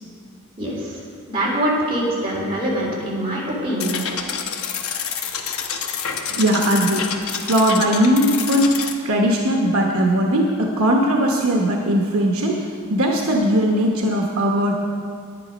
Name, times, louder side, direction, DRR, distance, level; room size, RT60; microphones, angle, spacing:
voice 1, 0.6-1.0 1.3-4.0, right 1 dB, 25° right, -6 dB, 3.3 m, -24 dB
sound 1, 3.8-8.9, left 6 dB, 70° left, 0.9 m, -28 dB
voice 2, 6.3-8.7 9.0-14.7, equal, 70° right, 0 dB, 1.0 m, -19 dB
10.5 x 10.0 x 5.2 m, 2.2 s
head